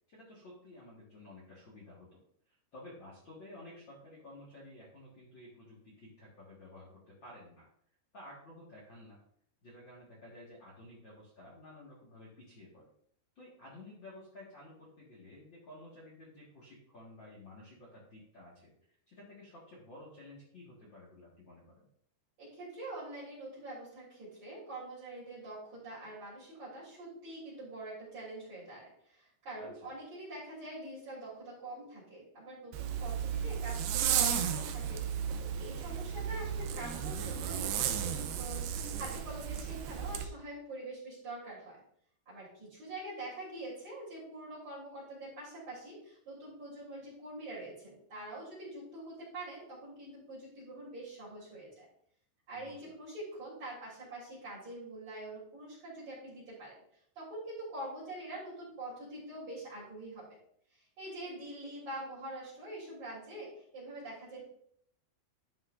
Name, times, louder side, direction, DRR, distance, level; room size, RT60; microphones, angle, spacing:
voice 1, 0.1-6.9 7.2-7.7 8.1-9.2 9.6-12.8 13.3-21.9 29.6-29.9 35.7-36.0 52.5-52.9, left 1 dB, 85° left, -6 dB, 1.0 m, -53 dB
voice 2, 22.4-41.8 42.3-51.9 52.5-56.7 57.2-60.3 60.7-64.5, right 2 dB, 40° right, -8 dB, 4.1 m, -45 dB
Zipper (clothing), 32.7-40.3, right 8 dB, 90° right, 2.2 m, -34 dB
12.0 x 5.8 x 2.6 m, 0.67 s
omnidirectional pair, 5.1 m